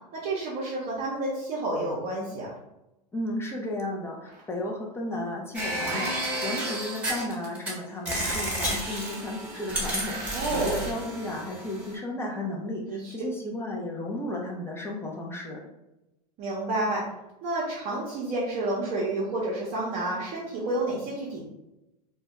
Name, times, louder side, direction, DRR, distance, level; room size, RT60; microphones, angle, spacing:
voice 1, 0.1-2.5 10.3-10.8 12.9-13.1 16.4-17.0 17.4-21.4, right 2 dB, 45° right, -5 dB, 0.6 m, -30 dB
voice 2, 3.1-15.6, left 1 dB, 10° left, -1 dB, 0.4 m, -34 dB
sound 1, 5.5-7.7 8.1-11.9, right 1 dB, 5° right, 0.9 m, -31 dB
2.2 x 2.1 x 2.9 m, 0.94 s
hypercardioid pair, 115°, 21 cm